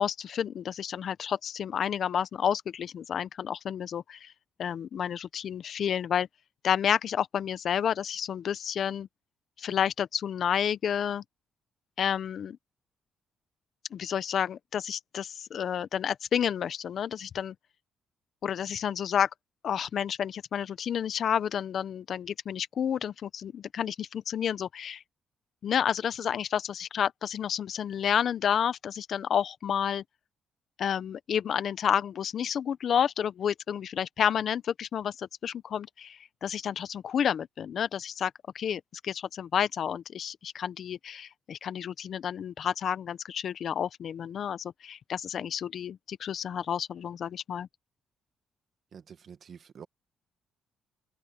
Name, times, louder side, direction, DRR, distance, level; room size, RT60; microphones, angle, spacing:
voice 1, 0.0-4.3 4.6-6.3 6.6-9.1 9.6-11.2 12.0-12.6 13.9-17.5 18.4-19.3 19.6-25.0 25.6-30.0 30.8-47.7, left 8 dB, 60° left, 0.9 m, -30 dB
voice 2, 48.9-49.9, right 7 dB, 55° right, 1.9 m, -48 dB
open air
cardioid pair, 90°, 0 cm